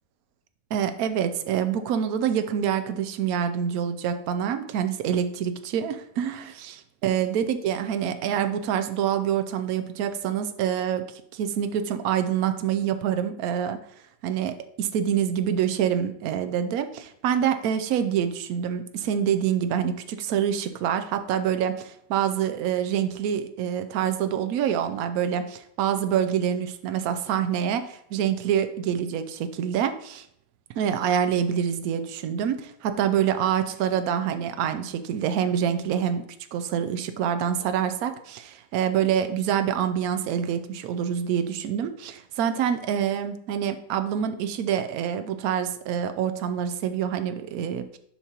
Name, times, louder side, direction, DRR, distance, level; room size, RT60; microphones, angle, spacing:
voice 1, 0.7-6.4 7.0-13.8 14.2-30.3 30.8-36.2 36.5-48.0, right 9 dB, 70° right, 9 dB, 0.8 m, -26 dB
7.2 x 5.1 x 2.9 m, 0.70 s
omnidirectional pair, 2.0 m